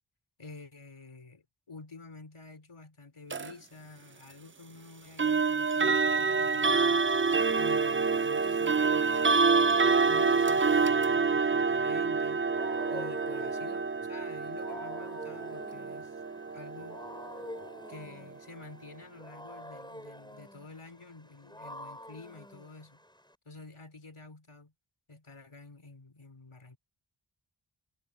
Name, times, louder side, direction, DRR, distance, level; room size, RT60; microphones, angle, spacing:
voice 1, 0.4-7.1 7.6-12.4 12.9-16.2 16.5-17.0 17.9-23.0 23.5-24.7 25.1-26.8, left 3 dB, 85° left, 3.9 m, -49 dB
sound 1, 3.3-3.5 5.2-18.0, right 4 dB, 25° right, 0.4 m, -27 dB
Wild animals, 12.1-23.3, equal, 10° left, 7.9 m, -47 dB
wide cardioid pair, 50°, 48 cm